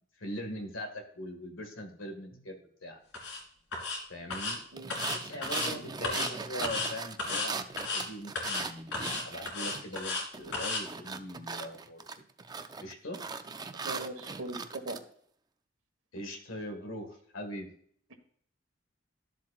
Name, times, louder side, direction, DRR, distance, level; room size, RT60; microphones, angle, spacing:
voice 1, 0.2-3.0 4.1-4.6 5.1-7.7 7.9-8.9 9.2-12.0 12.8-13.2 16.1-17.7, equal, 85° left, 5 dB, 1.8 m, -41 dB
sound 1, 3.1-3.4 3.7-4.0 4.3-4.6 4.9-5.7 6.0-6.3 6.6-6.9 7.2-7.5 7.8-8.0 8.4-8.6 8.9-10.2 10.5-10.8, left 3 dB, 65° left, 2.8 m, -33 dB
sound 2, 4.8-10.0 10.3-15.0, right 4 dB, 20° right, 0.4 m, -39 dB
voice 2, 13.9-15.0, right 2 dB, 70° right, 6 dB, 1.4 m, -40 dB
12.5 x 7.3 x 2.4 m, 0.62 s
head